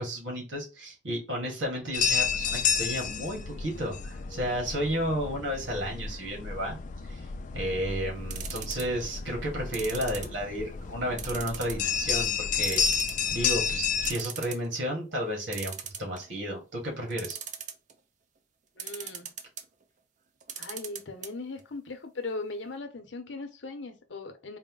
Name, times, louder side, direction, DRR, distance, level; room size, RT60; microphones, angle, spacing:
voice 1, 0.0-6.8 7.0-7.2 7.5-12.8 13.3-17.4, equal, 75° right, 1.9 m, -32 dB
sound 1, 1.9-14.1, left 6 dB, 45° left, 0.4 m, -31 dB
sound 2, 8.3-9.0 9.7-10.7 11.2-11.9 12.2-12.3 12.6-13.4 13.8-13.9 14.0-14.7 15.5-16.4 17.1-17.9 18.8-19.6 20.4-21.3 21.6-21.7 21.9-22.0, right 8 dB, 40° right, 0.5 m, -38 dB
voice 2, 18.8-19.3 20.6-24.6, left 3 dB, 75° left, 0.8 m, -38 dB
4.1 x 2.1 x 3.8 m
head